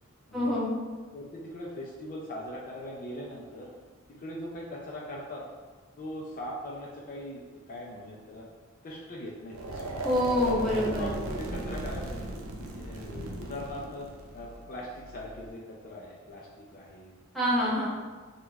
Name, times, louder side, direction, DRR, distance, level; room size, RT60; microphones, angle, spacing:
voice 1, 0.3-0.7 10.0-11.1 17.3-17.9, left 1 dB, ahead, -9 dB, 0.9 m, -26 dB
voice 2, 1.1-3.7 4.1-5.4 6.0-7.4 7.7-8.5 8.8-10.1 10.8-12.3 12.6-17.2 17.4-17.8, left 1 dB, 40° left, -4 dB, 0.4 m, -41 dB
sound 1, 9.5-15.5, right 2 dB, 75° right, 0.5 m, -37 dB
2.9 x 2.2 x 3.3 m, 1.4 s
head